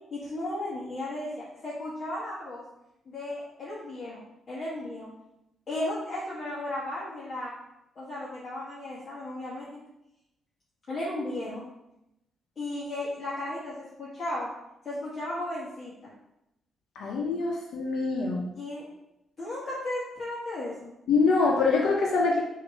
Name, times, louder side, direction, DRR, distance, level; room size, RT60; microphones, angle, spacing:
voice 1, 0.1-1.3 1.6-2.6 3.1-4.2 4.5-5.1 5.7-7.5 8.0-9.8 10.9-11.6 12.6-14.5 14.9-16.1 18.5-18.9 19.4-20.9, left 1 dB, 35° left, -8 dB, 1.6 m, -35 dB
voice 2, 17.0-18.5 21.1-22.4, left 4 dB, 80° left, -2 dB, 1.1 m, -24 dB
6.6 x 3.0 x 5.2 m, 0.86 s
cardioid pair, 160°, 0 cm